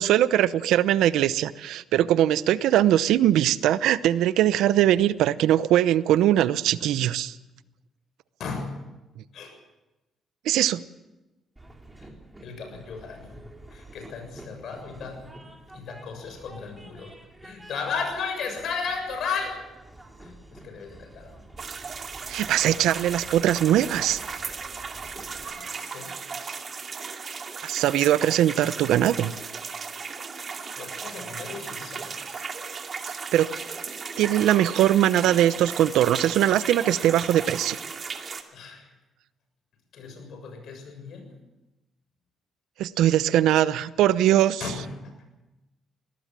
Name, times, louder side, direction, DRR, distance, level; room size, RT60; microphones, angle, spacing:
voice 1, 0.0-7.3 10.5-10.8 22.3-24.2 27.6-29.3 33.3-33.5 34.2-37.8 42.8-44.6, right 12 dB, 85° right, 16 dB, 0.8 m, -21 dB
voice 2, 8.4-8.9 9.3-9.5 12.0-12.1 12.4-13.4 13.7-15.4 15.7-17.2 17.4-19.6 20.2-21.4 25.0-26.2 30.4-32.4 38.5-38.9 39.9-41.3 44.6-45.2, left 5 dB, 70° left, 4 dB, 7.3 m, -35 dB
Train, 11.6-25.4, right 1 dB, 15° right, 4.0 m, -49 dB
sound 1, 21.6-38.4, right 5 dB, 45° right, 2.5 m, -36 dB
22.0 x 18.5 x 7.6 m, 1.0 s
cardioid pair, 90°, 0 cm